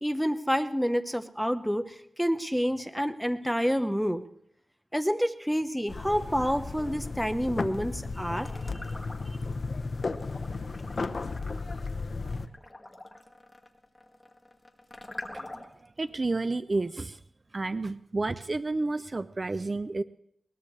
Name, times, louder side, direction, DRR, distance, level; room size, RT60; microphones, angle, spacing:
voice 1, 0.0-4.2 4.9-8.5, equal, ahead, 9 dB, 1.1 m, -28 dB
sound 1, 5.9-12.5, left 3 dB, 60° left, 0.9 m, -34 dB
sound 2, 8.4-9.5 9.9-15.9, left 2 dB, 20° left, 2.0 m, -45 dB
voice 2, 15.3-17.2 17.5-20.0, right 3 dB, 40° right, 13 dB, 0.5 m, -31 dB
21.5 x 20.0 x 3.3 m, 0.71 s
wide cardioid pair, 70°, 0 cm